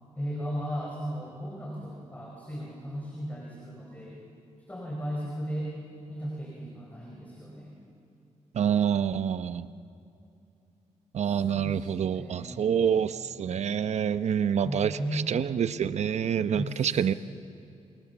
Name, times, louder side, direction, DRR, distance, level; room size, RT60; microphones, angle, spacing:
voice 1, 0.1-4.2 4.7-5.7 6.1-7.8 11.2-12.9 14.6-15.7 16.5-17.0, equal, 15° left, -2 dB, 5.2 m, -36 dB
voice 2, 8.5-9.7 11.1-17.1, right 8 dB, 65° right, 13 dB, 0.8 m, -27 dB
28.5 x 27.5 x 7.0 m, 2.7 s
cardioid pair, 100°, 12 cm